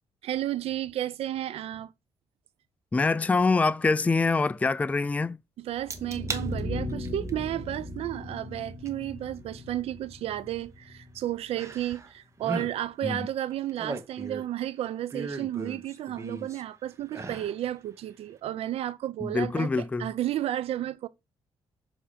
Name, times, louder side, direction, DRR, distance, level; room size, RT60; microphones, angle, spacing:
voice 1, 0.2-1.9 5.6-21.1, right 12 dB, 80° right, 0.5 m, -32 dB
voice 2, 2.9-5.4 13.0-13.3 19.2-20.1, left 3 dB, 15° left, 0.3 m, -25 dB
sound 1, 5.8-11.8, left 1 dB, 5° right, 1.9 m, -38 dB
sound 2, 5.9-6.5 6.9-7.3 8.9-9.0 11.6-12.1 12.4-12.7 13.5-14.6 15.1-16.6 17.1-17.6 18.0-18.1, right 3 dB, 30° right, 1.0 m, -37 dB
7.2 x 2.8 x 5.0 m
cardioid pair, 100°, 10 cm